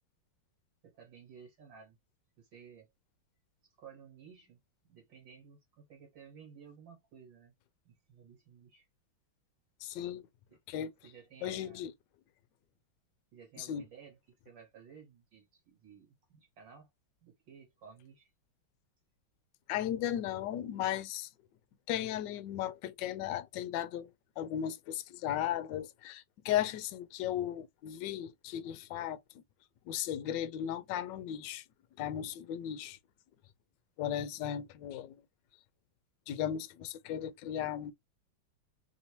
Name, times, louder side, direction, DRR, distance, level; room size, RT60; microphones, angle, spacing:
voice 1, 0.8-2.0 2.4-2.9 3.8-4.6 4.9-7.5 7.9-8.9 10.5-10.6 11.0-11.9 13.3-14.2 14.5-16.9 17.2-18.3, right 6 dB, 65° right, 1.9 m, -55 dB
voice 2, 9.8-10.3 10.7-10.9 11.4-11.9 13.6-13.8 19.7-21.3 21.9-24.1 24.4-29.2 29.9-31.6 32.0-33.0 34.0-35.2 36.3-37.9, left 11 dB, 75° left, 1.1 m, -36 dB
3.5 x 2.8 x 2.8 m
omnidirectional pair, 2.3 m